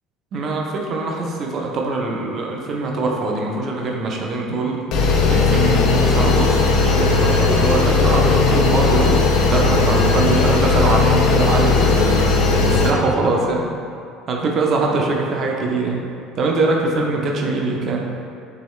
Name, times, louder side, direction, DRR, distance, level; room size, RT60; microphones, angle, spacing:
voice 1, 0.3-4.8 5.2-12.3 12.6-13.6 14.3-16.0 16.3-18.0, right 3 dB, 35° right, 0 dB, 0.5 m, -22 dB
sound 1, 4.9-12.9, left 4 dB, 50° left, 0.5 m, -16 dB
4.7 x 3.1 x 3.1 m, 2.5 s
cardioid pair, 170°, 0 cm